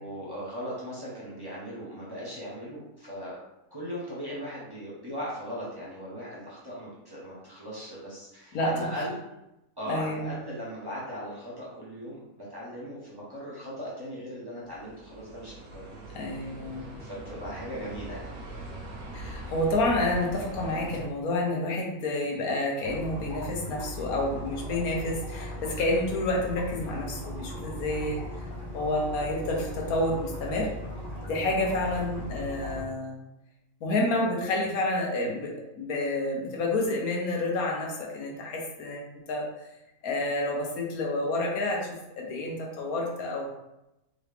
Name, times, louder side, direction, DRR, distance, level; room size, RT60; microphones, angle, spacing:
voice 1, 0.0-3.4 3.7-9.2 9.8-16.2 16.8-18.3 31.8-32.0, equal, 20° right, -7 dB, 0.9 m, -38 dB
voice 2, 9.9-10.4 16.1-16.9 19.1-28.2 28.7-30.7 31.3-33.2 33.8-39.4 40.0-43.5, left 2 dB, 80° left, -1 dB, 1.3 m, -29 dB
sound 1, 14.7-21.1, right 1 dB, 65° right, 1.1 m, -41 dB
sound 2, 22.8-32.8, left 1 dB, 45° left, 0.9 m, -38 dB
3.7 x 3.0 x 3.4 m, 0.90 s
omnidirectional pair, 1.5 m